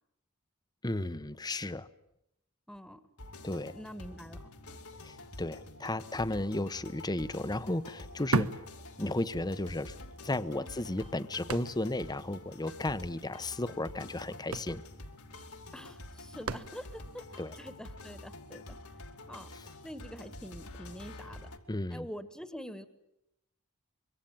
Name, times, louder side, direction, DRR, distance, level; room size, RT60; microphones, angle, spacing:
voice 1, 0.8-1.9 3.4-3.7 5.0-8.6 9.0-9.9 10.2-14.8 17.4-17.6 19.5-19.7 21.7-22.1, left 1 dB, 20° left, 13 dB, 0.9 m, -34 dB
voice 2, 2.7-3.0 3.7-4.8 10.5-10.7 15.7-18.8 19.3-19.5 19.8-21.5 21.9-22.9, equal, 5° left, 11 dB, 1.6 m, -46 dB
sound 1, 3.2-21.6, left 2 dB, 80° left, 2.7 m, -48 dB
sound 2, 6.5-6.7 6.9-9.6 9.9-10.0 10.6-12.1 12.4-12.5 12.8-13.0 13.9-14.0 14.3-17.1 17.7-17.8, right 3 dB, 70° right, 1.1 m, -36 dB
25.0 x 23.5 x 8.9 m, 0.83 s
head